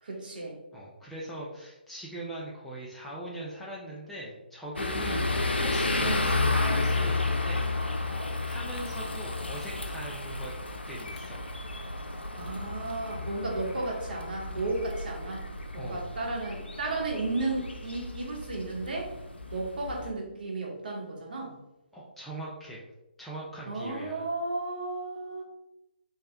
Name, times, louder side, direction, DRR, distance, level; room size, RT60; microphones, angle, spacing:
voice 1, 0.0-0.6 5.0-5.3 6.0-6.2 8.1-8.4 12.4-15.5 15.7-19.1 19.5-21.6 23.7-25.4, right 2 dB, 55° right, -2 dB, 1.2 m, -34 dB
voice 2, 0.7-5.2 5.6-7.7 8.5-10.5 10.9-11.5 15.8-16.1 21.9-22.8 23.2-24.3, right 1 dB, 5° left, -6 dB, 0.4 m, -41 dB
sound 1, 4.8-20.1, left 2 dB, 80° left, 0.5 m, -32 dB
3.2 x 2.8 x 3.4 m, 0.96 s
figure-of-eight pair, 140°, 6 cm